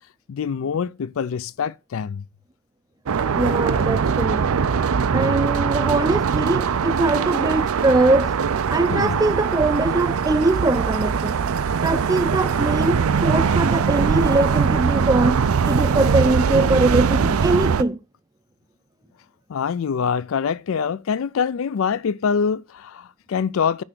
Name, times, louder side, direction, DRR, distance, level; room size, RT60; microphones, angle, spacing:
voice 1, 0.3-2.2 8.9-9.2 19.5-23.8, left 6 dB, 70° left, 0.4 m, -25 dB
sound 1, 3.1-17.8, right 6 dB, 85° right, 0.5 m, -21 dB
voice 2, 3.3-4.5 5.1-8.3 8.7-11.4 11.8-18.0, right 2 dB, 15° right, 0.4 m, -22 dB
9.7 x 3.3 x 6.1 m
head